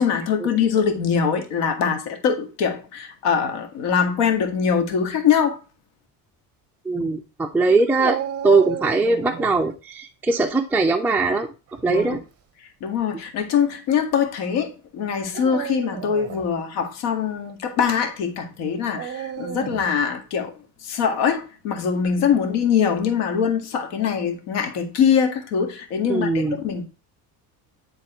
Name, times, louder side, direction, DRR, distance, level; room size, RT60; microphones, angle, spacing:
voice 1, 0.0-5.6 11.9-12.2 12.8-20.5 20.8-26.8, left 7 dB, 80° left, 2.2 m, -23 dB
voice 2, 6.9-8.2 8.4-11.5 11.8-12.2 26.1-26.6, right 3 dB, 5° right, 0.5 m, -20 dB
Dog, 8.0-9.6 11.7-12.2 13.0-13.1 15.2-16.5 18.9-19.9, right 9 dB, 35° right, 0.9 m, -32 dB
10.5 x 4.1 x 4.4 m
cardioid pair, 140°, 40 cm